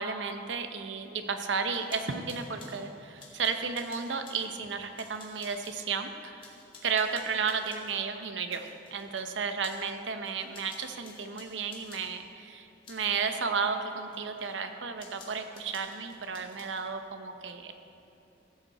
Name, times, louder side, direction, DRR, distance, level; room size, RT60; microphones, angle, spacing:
voice 1, 0.0-6.5 6.8-17.7, right 5 dB, 85° right, 7 dB, 0.8 m, -33 dB
sound 1, 1.7-2.8 3.2-5.9 6.4-8.0 8.5-9.3 9.6-10.0 10.2-12.1 12.8-13.1 13.5-14.5 15.0-16.9, left 3 dB, 30° left, 2.1 m, -53 dB
15.5 x 8.1 x 4.3 m, 2.7 s
head